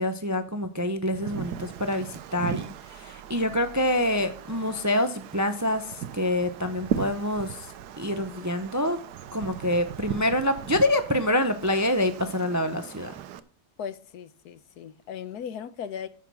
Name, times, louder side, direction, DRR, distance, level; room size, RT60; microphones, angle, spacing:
voice 1, 0.0-7.7 8.0-9.0 9.3-13.1, left 1 dB, 15° right, 0.6 m, -26 dB
Wind, 1.1-13.4, right 9 dB, 90° right, 1.3 m, -38 dB
voice 2, 13.8-16.1, left 8 dB, 75° left, 1.4 m, -37 dB
14.5 x 5.8 x 6.2 m
omnidirectional pair, 1.7 m